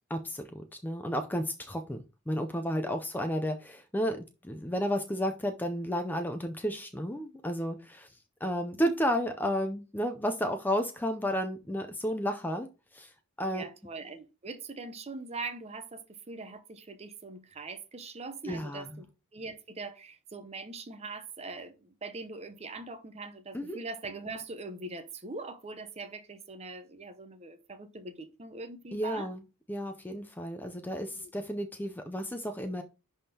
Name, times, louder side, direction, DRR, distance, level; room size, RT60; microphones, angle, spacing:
voice 1, 0.0-8.1 8.4-13.1 13.4-13.6 18.4-19.0 23.5-23.8 28.9-29.4 29.7-32.8, equal, 10° left, 0.4 m, -32 dB
voice 2, 13.4-16.0 16.3-19.0 19.3-29.3 31.1-31.3, right 3 dB, 30° right, 0.7 m, -42 dB
10.5 x 3.6 x 2.8 m
head